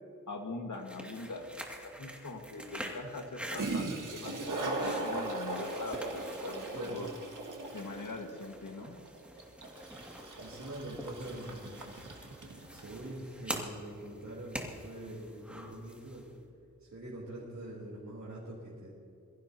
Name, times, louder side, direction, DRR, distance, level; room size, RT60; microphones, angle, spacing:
voice 1, 0.3-1.5 1.8-7.1 7.7-9.0, left 2 dB, 80° left, 3 dB, 1.8 m, -42 dB
sound 1, 0.7-16.3, equal, 5° right, 2.4 m, -46 dB
Toilet flush, 1.5-1.6 3.3-3.4 3.5-12.9, right 2 dB, 85° right, 1.9 m, -39 dB
voice 2, 6.7-7.1 10.4-11.8 12.7-16.3 16.8-18.9, right 1 dB, 65° right, -7 dB, 3.7 m, -44 dB
23.0 x 15.0 x 3.0 m, 2.7 s
cardioid pair, 45°, 31 cm